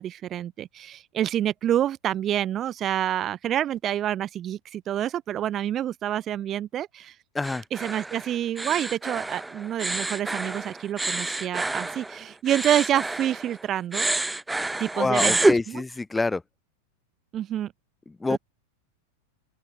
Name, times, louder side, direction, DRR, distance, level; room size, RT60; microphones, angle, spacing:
voice 1, 0.0-7.1 7.7-14.1 14.8-15.8 17.3-17.7 18.3-18.4, right 11 dB, 30° right, 7.7 m, -28 dB
sound 1, 7.4-13.6 13.9-15.6, right 2 dB, 5° right, 3.2 m, -28 dB
voice 2, 14.9-16.4 18.2-18.4, left 3 dB, 10° left, 4.7 m, -26 dB
open air
figure-of-eight pair, 90°, 0 cm